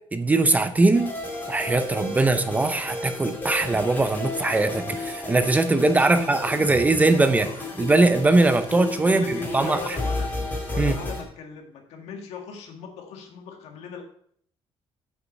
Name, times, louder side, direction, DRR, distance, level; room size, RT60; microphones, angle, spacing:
voice 1, 0.1-1.1 1.5-7.5 7.8-10.0 10.8-11.0, right 2 dB, 15° right, 0.5 m, -21 dB
sound 1, 0.9-11.2, left 2 dB, 15° left, 2.5 m, -33 dB
sound 2, 7.3-8.8, left 3 dB, 50° left, 2.2 m, -46 dB
voice 2, 8.7-10.4 10.7-14.0, left 5 dB, 80° left, 1.9 m, -39 dB
8.0 x 5.7 x 5.5 m
cardioid pair, 165°, 11 cm